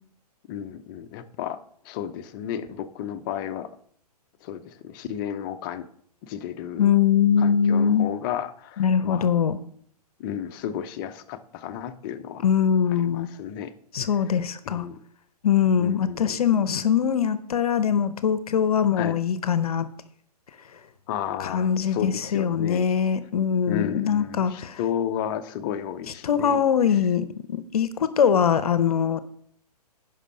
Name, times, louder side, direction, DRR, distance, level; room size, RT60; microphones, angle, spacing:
voice 1, 0.5-3.7 4.4-5.9 6.2-6.9 7.4-9.3 10.2-12.5 12.9-13.7 14.6-15.0 15.8-16.4 19.0-19.2 21.1-22.9 23.7-26.6 26.9-27.0, left 9 dB, 30° left, 10 dB, 0.7 m, -33 dB
voice 2, 6.8-8.1 8.8-9.6 12.4-13.3 13.9-14.9 15.4-19.9 21.4-24.8 26.2-29.2, left 8 dB, 65° left, 13 dB, 0.8 m, -22 dB
10.0 x 5.5 x 5.4 m, 0.64 s
figure-of-eight pair, 125°, 20 cm